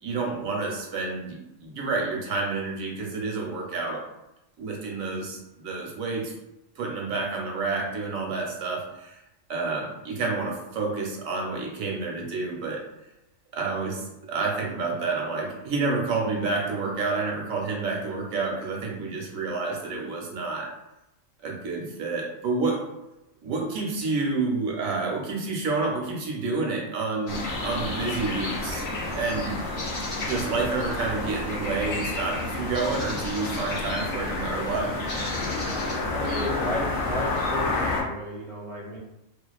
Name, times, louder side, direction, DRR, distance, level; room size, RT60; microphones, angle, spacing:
voice 1, 0.0-4.0 4.6-6.3 6.8-9.2 9.5-12.8 13.5-20.7 21.4-22.8 23.4-28.8 29.1-29.6 30.0-35.0, right 3 dB, 80° right, -1 dB, 1.0 m, -29 dB
sound 1, 27.3-38.0, left 2 dB, 55° left, 0.6 m, -30 dB
voice 2, 36.1-39.0, equal, 5° left, -7 dB, 0.4 m, -33 dB
2.3 x 2.3 x 2.2 m, 0.92 s
omnidirectional pair, 1.4 m